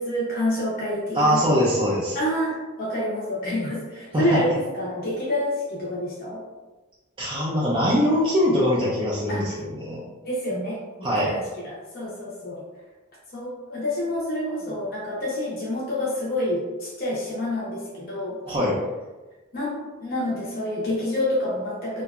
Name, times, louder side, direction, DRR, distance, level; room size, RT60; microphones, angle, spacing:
voice 1, 0.0-1.4 2.1-6.4 9.3-9.5 10.2-12.6 13.3-18.4 19.5-22.0, left 1 dB, 50° left, -6 dB, 0.6 m, -28 dB
voice 2, 1.1-2.2 4.1-4.4 7.2-10.0 11.0-11.3 18.5-18.8, equal, 25° right, -7 dB, 0.4 m, -22 dB
2.7 x 2.2 x 2.3 m, 1.2 s
head